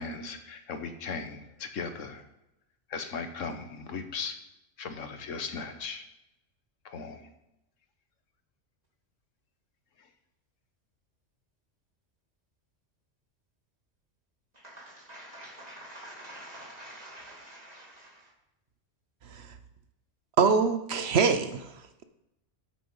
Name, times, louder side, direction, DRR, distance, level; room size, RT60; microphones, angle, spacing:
voice 1, 0.0-2.2 2.9-4.3 4.8-6.0 6.8-7.2, left 5 dB, 90° left, 1.4 m, -37 dB
voice 2, 14.6-18.2, right 1 dB, 30° right, 2.5 m, -46 dB
voice 3, 20.4-21.7, right 5 dB, 60° right, 1.0 m, -24 dB
8.8 x 7.8 x 5.5 m
omnidirectional pair, 1.3 m